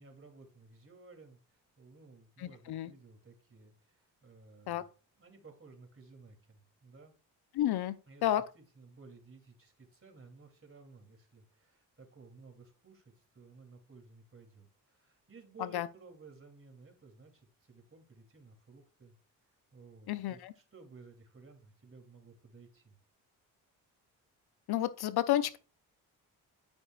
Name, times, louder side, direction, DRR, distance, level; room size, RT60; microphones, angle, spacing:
voice 1, 0.0-4.9 5.2-7.1 8.1-8.3 8.5-19.1 19.4-23.0, right 4 dB, 30° right, 2.9 m, -56 dB
voice 2, 2.4-2.9 4.7-4.8 7.5-8.0 8.2-8.4 15.6-15.9 20.1-20.5 24.7-25.6, left 12 dB, 60° left, 0.7 m, -31 dB
12.0 x 5.1 x 2.4 m
hypercardioid pair, 50°, 43 cm